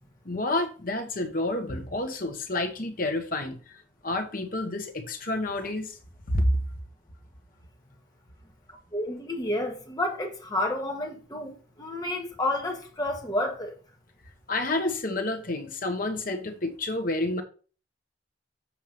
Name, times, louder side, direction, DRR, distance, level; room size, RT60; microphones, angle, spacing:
voice 1, 0.2-3.8 4.0-6.0 6.3-6.6 12.2-12.3 14.5-17.4, left 2 dB, 50° left, 1.3 m, -29 dB
voice 2, 8.9-13.8, left 1 dB, 20° left, 1.6 m, -30 dB
7.4 x 4.6 x 5.2 m
head